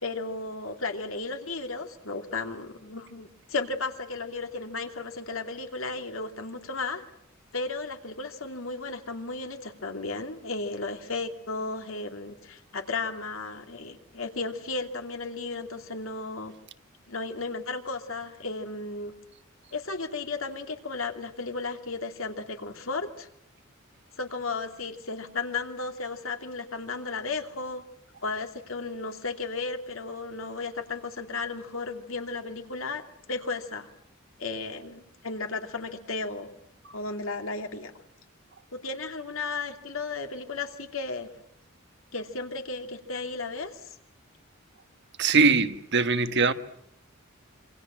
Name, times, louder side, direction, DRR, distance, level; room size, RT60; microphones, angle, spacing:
voice 1, 0.0-7.0 7.5-16.5 17.1-19.1 19.7-23.3 24.2-27.8 28.2-33.9 34.4-36.5 36.9-38.0 38.7-41.3 42.1-43.9, left 3 dB, 70° left, 2.7 m, -34 dB
voice 2, 45.2-46.5, right 4 dB, 55° right, 1.4 m, -21 dB
27.0 x 25.5 x 7.5 m
head